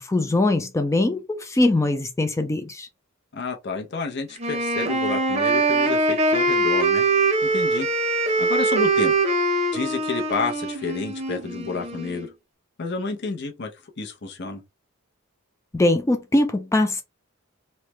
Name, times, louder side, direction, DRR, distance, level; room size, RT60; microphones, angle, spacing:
voice 1, 0.0-2.9 15.7-17.0, left 2 dB, 15° left, 0.3 m, -22 dB
voice 2, 3.3-7.1 7.5-7.9 8.4-9.1 9.7-12.3 12.8-13.7 14.0-14.6, left 4 dB, 55° left, 0.7 m, -30 dB
Wind instrument woodwind instrument, 4.4-12.2, right 2 dB, 30° right, 0.7 m, -22 dB
3.1 x 2.1 x 3.0 m
head